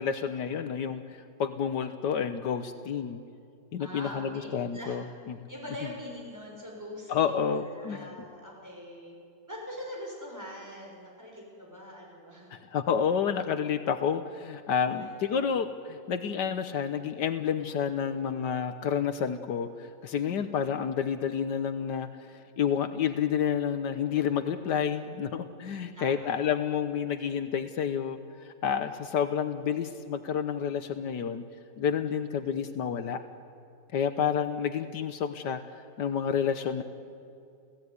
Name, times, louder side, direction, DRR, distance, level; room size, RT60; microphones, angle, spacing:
voice 1, 0.0-3.2 3.7-5.4 7.1-8.1 12.5-31.4 31.8-33.2 33.9-35.6 36.0-36.8, left 7 dB, 75° left, 9 dB, 1.6 m, -30 dB
voice 2, 3.8-4.5 4.7-5.0 5.5-9.2 9.5-12.5 14.8-15.1 20.1-20.5 25.6-26.4, equal, 10° right, -2 dB, 6.3 m, -43 dB
30.0 x 16.5 x 9.7 m, 2.5 s
omnidirectional pair, 1.9 m